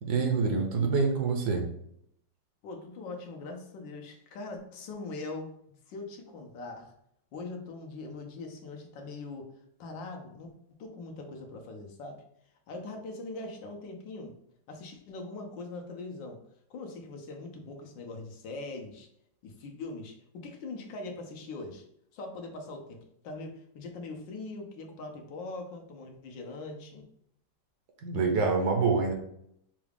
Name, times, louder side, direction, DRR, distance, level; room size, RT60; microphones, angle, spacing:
voice 1, 0.0-1.7 28.0-29.1, right 4 dB, 65° right, 3 dB, 1.3 m, -26 dB
voice 2, 2.6-5.5 5.9-6.9 7.3-9.5 9.8-12.2 12.7-14.3 14.7-16.4 16.7-19.1 19.4-21.8 22.1-27.0, left 3 dB, 80° left, 2 dB, 1.6 m, -41 dB
5.9 x 2.4 x 3.4 m, 0.71 s
omnidirectional pair, 2.0 m